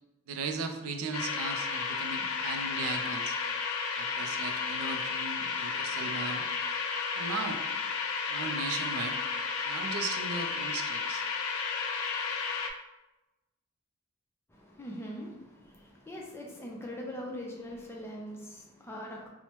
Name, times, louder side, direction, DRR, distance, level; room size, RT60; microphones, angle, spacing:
voice 1, 0.3-3.4 4.0-6.5 7.1-7.6 8.3-9.2 9.6-11.3, right 4 dB, 80° right, 5 dB, 0.3 m, -37 dB
sound 1, 1.1-12.7, left 5 dB, 75° left, 0.3 m, -33 dB
voice 2, 14.5-19.3, equal, 10° left, -1 dB, 0.4 m, -42 dB
3.0 x 2.0 x 3.0 m, 1.0 s
head